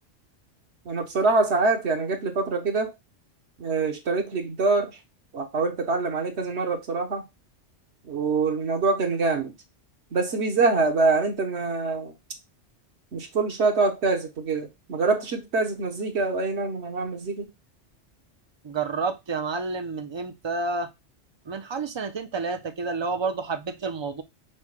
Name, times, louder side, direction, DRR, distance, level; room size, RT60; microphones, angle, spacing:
voice 1, 0.9-2.9 3.6-4.9 5.3-7.2 8.1-9.5 10.1-12.1 13.1-17.5, right 3 dB, 65° right, 1.2 m, -25 dB
voice 2, 18.6-20.9 21.5-24.2, right 4 dB, 40° right, 0.4 m, -29 dB
6.1 x 2.2 x 3.0 m
omnidirectional pair, 1.2 m